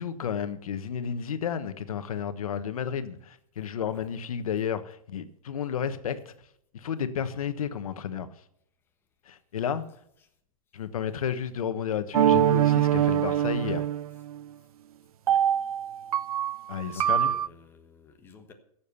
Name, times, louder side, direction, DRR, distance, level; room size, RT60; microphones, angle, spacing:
voice 1, 0.0-6.3 6.7-8.3 9.3-9.8 10.7-13.9 16.7-17.3, left 8 dB, 70° left, 1.3 m, -32 dB
sound 1, 12.1-14.4 15.3-17.5, right 10 dB, 80° right, 0.4 m, -24 dB
voice 2, 16.8-18.5, left 4 dB, 10° left, 1.3 m, -51 dB
16.0 x 7.2 x 6.9 m
hypercardioid pair, 160°, 19 cm